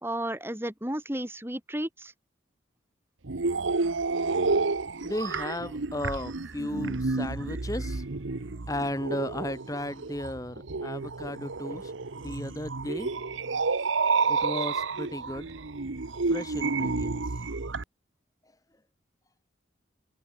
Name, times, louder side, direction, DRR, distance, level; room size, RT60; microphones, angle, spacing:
voice 1, 0.0-2.1, right 1 dB, 10° right, 2.5 m, -33 dB
sound 1, 3.2-17.8, right 4 dB, 80° right, 1.1 m, -30 dB
voice 2, 5.0-8.0 8.7-11.9 12.2-13.1 14.3-15.5 16.3-17.2, left 1 dB, 20° left, 2.0 m, -35 dB
head